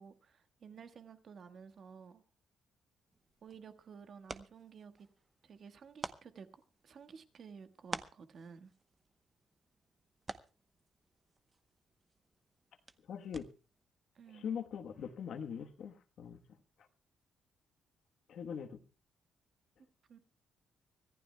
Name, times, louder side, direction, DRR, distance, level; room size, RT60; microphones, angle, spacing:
voice 1, 0.0-2.2 3.4-5.1 5.4-8.7 14.1-14.5 20.1-20.2, right 6 dB, 55° right, 1.5 m, -53 dB
sound 1, 3.1-13.8, right 3 dB, 25° right, 0.9 m, -51 dB
voice 2, 13.1-13.5 14.3-16.4 18.3-18.8, left 7 dB, 65° left, 1.2 m, -42 dB
25.0 x 14.5 x 2.3 m
cardioid pair, 90°, 0 cm